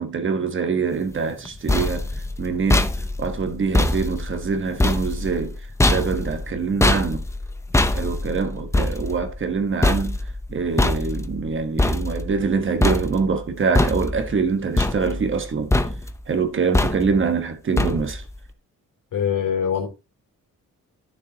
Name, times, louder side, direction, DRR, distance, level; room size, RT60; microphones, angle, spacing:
voice 1, 0.0-2.1 2.4-2.9 3.2-5.5 5.8-7.2 7.9-10.2 10.5-15.7 16.3-18.2, right 5 dB, 40° right, 1.2 m, -24 dB
sound 1, 1.3-12.5 12.8-13.4 13.8-14.4 14.8-15.5 15.7-16.2 16.7-17.3 17.8-18.3, left 2 dB, 10° left, 0.6 m, -23 dB
voice 2, 19.1-19.9, left 8 dB, 75° left, 3.5 m, -23 dB
12.5 x 6.9 x 2.8 m
wide cardioid pair, 170°, 32 cm